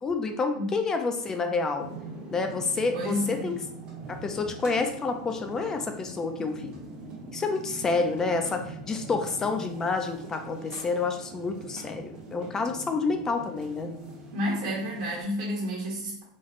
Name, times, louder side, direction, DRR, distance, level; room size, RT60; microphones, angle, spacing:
voice 1, 0.0-1.9 2.3-3.6 4.1-6.7 7.3-13.9, left 4 dB, 15° left, 6 dB, 0.3 m, -29 dB
sound 1, 1.8-15.2, right 2 dB, 25° right, 1.0 m, -42 dB
voice 2, 2.9-3.5 14.3-16.2, equal, 60° right, -4 dB, 1.3 m, -30 dB
4.1 x 3.0 x 2.5 m, 0.73 s
supercardioid pair, 160°, 4 cm